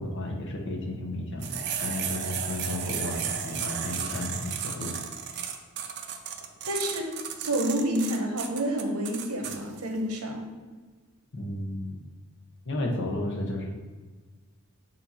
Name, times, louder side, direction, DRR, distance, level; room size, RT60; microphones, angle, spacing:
voice 1, 0.0-4.9 11.3-12.0 12.6-13.7, left 1 dB, 55° left, 1 dB, 1.1 m, -33 dB
sound 1, 1.4-9.6, right 8 dB, 50° right, 0.6 m, -34 dB
voice 2, 6.6-7.1 7.4-10.5, right 1 dB, 85° right, 2 dB, 1.2 m, -29 dB
6.9 x 2.8 x 5.6 m, 1.3 s
head